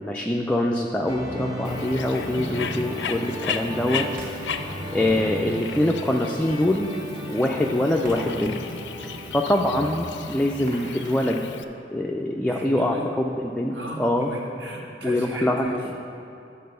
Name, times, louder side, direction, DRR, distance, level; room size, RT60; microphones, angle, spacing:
voice 1, 0.0-4.1 4.9-6.9 7.3-8.6 9.0-11.5 11.9-14.3 15.0-15.9, left 1 dB, 5° left, 0 dB, 0.3 m, -24 dB
sound 1, 1.1-11.0, right 1 dB, 20° right, 0.7 m, -35 dB
Bird, 1.6-11.6, left 6 dB, 80° left, 0.4 m, -35 dB
sound 2, 4.2-12.2, right 1 dB, 50° right, 1.2 m, -47 dB
voice 2, 12.4-13.1 13.7-15.9, right 1 dB, 85° right, -1 dB, 1.4 m, -36 dB
9.5 x 4.3 x 6.7 m, 2.8 s
head